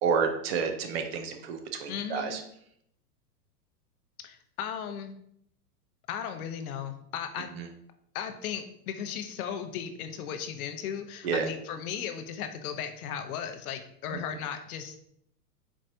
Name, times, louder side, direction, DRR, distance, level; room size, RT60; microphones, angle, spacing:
voice 1, 0.0-2.4 7.6-7.7 11.2-11.5, right 6 dB, 40° right, 6 dB, 0.5 m, -29 dB
voice 2, 1.9-2.4 4.2-5.1 6.1-7.5 8.1-15.0, left 8 dB, 65° left, 8 dB, 0.7 m, -36 dB
4.4 x 3.1 x 2.6 m, 0.71 s
hypercardioid pair, 125°, 48 cm